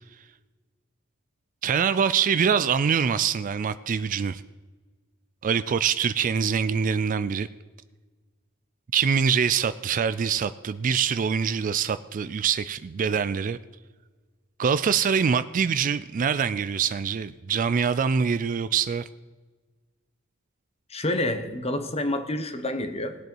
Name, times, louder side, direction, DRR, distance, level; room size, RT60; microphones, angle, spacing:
voice 1, 1.6-4.4 5.4-7.5 8.9-13.6 14.6-19.1, right 6 dB, 40° right, 15 dB, 0.3 m, -24 dB
voice 2, 20.9-23.2, left 1 dB, 30° left, 8 dB, 1.1 m, -28 dB
19.0 x 7.9 x 4.6 m, 1.3 s
head